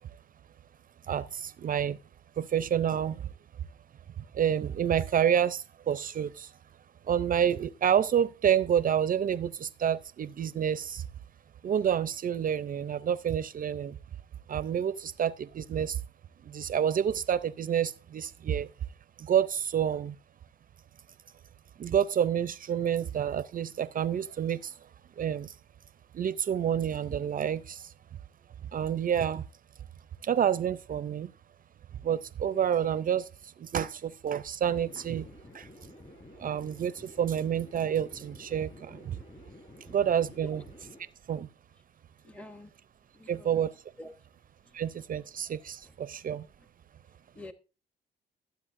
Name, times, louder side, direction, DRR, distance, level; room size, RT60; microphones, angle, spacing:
voice 1, 1.1-2.0 2.4-3.3 4.3-6.5 7.1-11.0 11.6-14.0 14.5-16.0 16.5-18.7 19.2-20.1 21.8-24.7 25.2-25.5 26.1-27.9 28.7-29.4 30.2-31.3 32.0-33.3 33.6-35.3 35.5-35.7 36.4-39.2 39.9-40.6 41.3-41.5 43.3-43.7 44.7-46.5, right 9 dB, 45° right, 0.5 m, -28 dB
sound 1, 34.6-41.0, left 1 dB, 30° left, 5.9 m, -51 dB
voice 2, 42.2-42.7 43.2-43.5 44.0-44.1 47.4-47.5, left 1 dB, 5° left, 0.8 m, -46 dB
18.5 x 8.2 x 2.5 m
cardioid pair, 90°, 20 cm